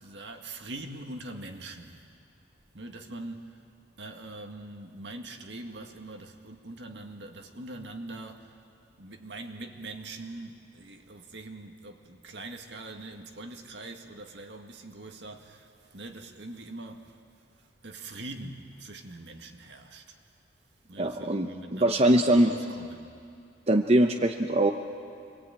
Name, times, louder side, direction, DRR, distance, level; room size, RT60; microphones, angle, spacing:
voice 1, 0.0-2.0 2.7-3.6 4.0-8.5 9.0-17.1 17.8-20.2 20.9-23.1, right 2 dB, 70° right, 1.9 m, -43 dB
voice 2, 21.0-22.6 23.7-24.7, right 1 dB, 35° right, 0.8 m, -22 dB
26.5 x 21.5 x 8.9 m
head